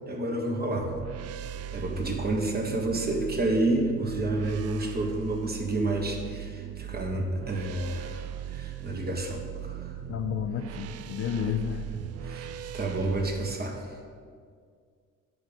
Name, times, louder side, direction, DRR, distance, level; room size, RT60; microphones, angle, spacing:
voice 1, 0.1-0.9 1.4-10.0 12.2-13.9, right 2 dB, 30° right, 2 dB, 1.4 m, -30 dB
sound 1, 0.7-13.6, right 10 dB, 55° right, 0.4 m, -39 dB
voice 2, 10.1-11.8, left 7 dB, 50° left, 7 dB, 0.6 m, -31 dB
10.0 x 3.8 x 6.9 m, 2.1 s
cardioid pair, 90°, 30 cm